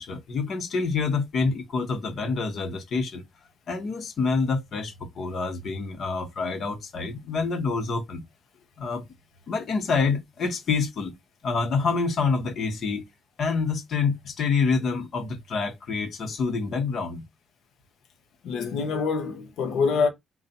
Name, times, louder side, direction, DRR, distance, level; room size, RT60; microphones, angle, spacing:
voice 1, 0.0-3.2 3.7-8.2 8.8-9.1 9.5-11.1 11.4-13.0 13.4-17.2, left 4 dB, 60° left, 1.3 m, -27 dB
voice 2, 18.4-20.1, left 5 dB, 75° left, 1.0 m, -25 dB
4.0 x 2.6 x 4.3 m
cardioid pair, 90°, 0 cm